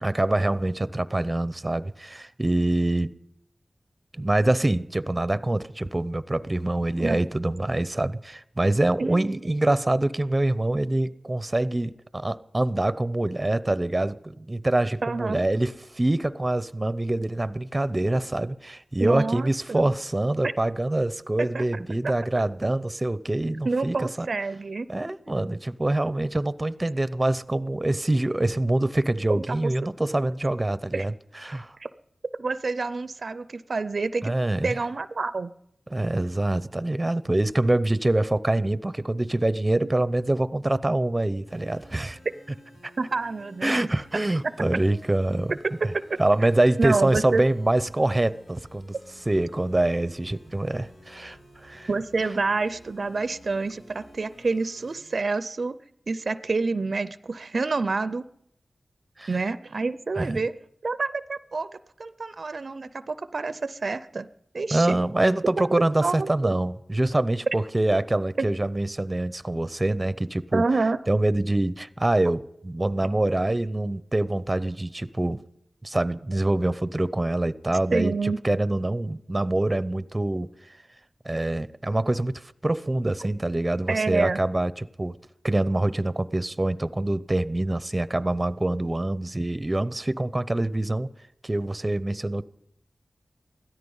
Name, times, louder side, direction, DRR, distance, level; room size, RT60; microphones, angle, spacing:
voice 1, 0.0-3.1 4.1-24.3 24.9-31.1 31.4-31.8 34.2-34.7 35.9-42.2 42.8-42.9 43.6-45.5 46.2-48.9 49.3-51.9 59.2-59.3 60.2-60.4 64.7-70.6 71.1-75.4 75.8-80.5 81.2-85.2 85.4-91.1 91.4-92.4, right 1 dB, 25° right, 0.7 m, -25 dB
voice 2, 9.0-9.3 15.0-15.4 19.0-19.9 20.4-20.5 21.4-21.6 22.0-22.1 23.7-24.9 29.3-29.7 30.9-31.1 31.8-31.9 32.4-34.3 34.6-35.5 39.8-39.9 43.0-43.9 45.9-46.5 46.8-47.4 51.9-55.8 56.1-58.2 59.3-60.5 60.8-61.7 62.0-64.3 64.5-65.0 66.0-66.6 68.4-68.5 70.5-71.0 72.3-72.4 77.9-78.4 83.2-83.3 83.9-84.4, right 3 dB, 65° right, 0.5 m, -28 dB
sound 1, 41.5-55.2, left 1 dB, 90° left, 2.2 m, -52 dB
16.5 x 13.5 x 5.5 m
cardioid pair, 50°, 0 cm